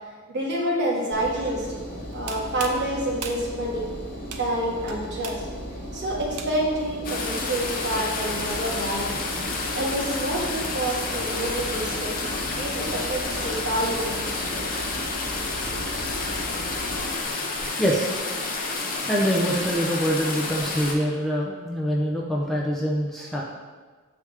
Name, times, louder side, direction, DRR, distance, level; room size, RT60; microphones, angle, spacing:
voice 1, 0.3-1.8 2.1-3.9 4.4-5.4 5.9-9.1 9.7-12.2 12.6-14.6 15.7-15.8, right 1 dB, 50° right, -3 dB, 1.4 m, -28 dB
Engine, 1.1-17.0, equal, 75° left, 1.4 m, -37 dB
sound 1, 2.0-6.9, right 5 dB, 90° right, 0.6 m, -40 dB
sound 2, 7.0-20.9, left 3 dB, 40° left, 0.7 m, -30 dB
voice 2, 17.8-18.1 19.1-23.4, equal, ahead, -4 dB, 0.5 m, -25 dB
6.9 x 4.8 x 3.4 m, 1.4 s
head